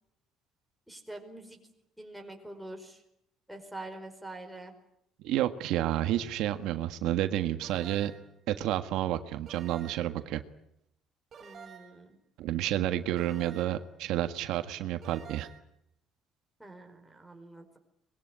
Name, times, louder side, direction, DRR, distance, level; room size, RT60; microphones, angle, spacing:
voice 1, 0.9-1.6 2.0-3.0 3.5-4.7 11.4-12.2 16.6-17.8, right 2 dB, ahead, 2 dB, 4.9 m, -45 dB
voice 2, 5.2-8.1 8.5-10.4 12.4-15.5, right 13 dB, 75° right, 9 dB, 1.6 m, -30 dB
sound 1, 7.6-8.3 9.5-10.2 11.3-12.1 13.2-13.9 15.0-15.6, right 7 dB, 35° right, 5.5 m, -49 dB
24.5 x 21.5 x 10.0 m, 0.79 s
cardioid pair, 160°, 0 cm